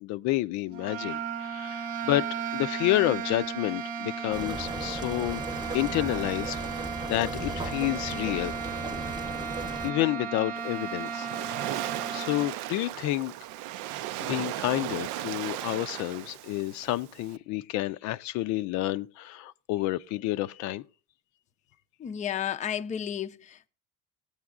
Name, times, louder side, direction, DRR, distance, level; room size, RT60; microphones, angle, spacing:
voice 1, 0.0-5.4 5.7-6.8 7.1-8.6 9.8-11.8 12.1-13.3 14.2-20.8, left 16 dB, 75° left, 0.5 m, -29 dB
sound 1, 0.7-12.5, right 6 dB, 55° right, 0.8 m, -35 dB
sound 2, 4.3-9.9, right 2 dB, 15° right, 0.9 m, -36 dB
Waves surf, 10.6-17.4, right 14 dB, 80° right, 0.5 m, -36 dB
voice 2, 22.0-23.7, left 9 dB, 25° left, 0.5 m, -32 dB
18.5 x 8.7 x 2.4 m
cardioid pair, 125°, 29 cm